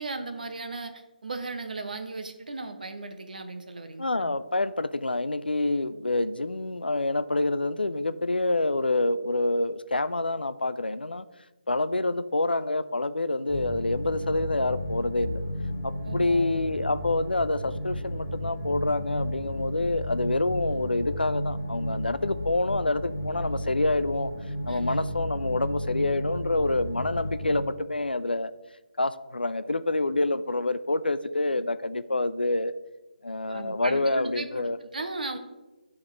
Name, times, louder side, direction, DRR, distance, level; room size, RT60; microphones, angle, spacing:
voice 1, 0.0-4.3 16.0-16.5 24.7-25.0 33.5-34.6 34.9-35.4, right 3 dB, 60° right, 7 dB, 0.7 m, -36 dB
voice 2, 4.0-11.3 11.7-15.4 15.8-24.3 24.7-28.5 29.0-32.7 33.2-34.8, left 2 dB, 85° left, 13 dB, 0.3 m, -27 dB
sound 1, 13.5-27.6, equal, 5° left, 1.5 m, -33 dB
10.5 x 3.5 x 3.2 m, 1.1 s
figure-of-eight pair, 150°, 5 cm